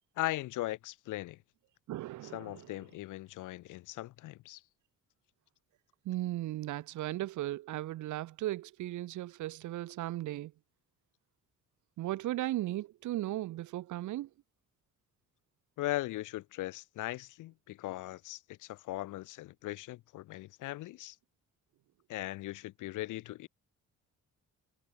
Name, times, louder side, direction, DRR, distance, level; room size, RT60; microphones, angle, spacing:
voice 1, 0.2-1.4 2.3-4.6 15.8-21.1 22.1-23.5, left 17 dB, 90° left, 1.5 m, -39 dB
voice 2, 1.9-2.7 6.0-10.5 12.0-14.3, right 15 dB, 75° right, 0.9 m, -36 dB
cardioid pair, 90°, 30 cm